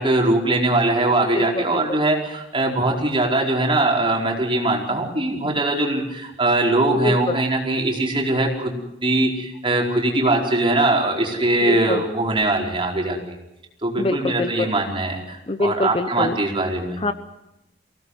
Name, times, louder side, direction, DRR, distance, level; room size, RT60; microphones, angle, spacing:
voice 1, 0.0-13.2 13.8-17.0, right 2 dB, 30° right, 0 dB, 4.7 m, -21 dB
voice 2, 1.3-2.0 7.0-7.4 11.7-12.0 14.0-14.7 15.5-16.4 17.0-17.1, left 2 dB, 30° left, 11 dB, 1.0 m, -25 dB
23.5 x 17.5 x 8.1 m, 0.90 s
head